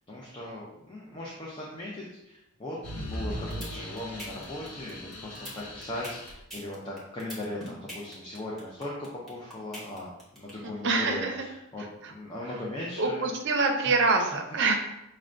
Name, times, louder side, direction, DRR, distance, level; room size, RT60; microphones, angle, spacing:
voice 1, 0.1-10.1 10.4-13.3, left 1 dB, 20° left, -4 dB, 0.5 m, -38 dB
sound 1, 2.8-6.4, equal, 80° left, 0.8 m, -39 dB
sound 2, 3.3-10.5, equal, ahead, 1.1 m, -42 dB
voice 2, 10.6-11.5 11.8-12.1 12.4-12.6 13.0-14.8, right 3 dB, 55° right, 4 dB, 0.5 m, -26 dB
6.0 x 2.2 x 2.5 m, 0.87 s
head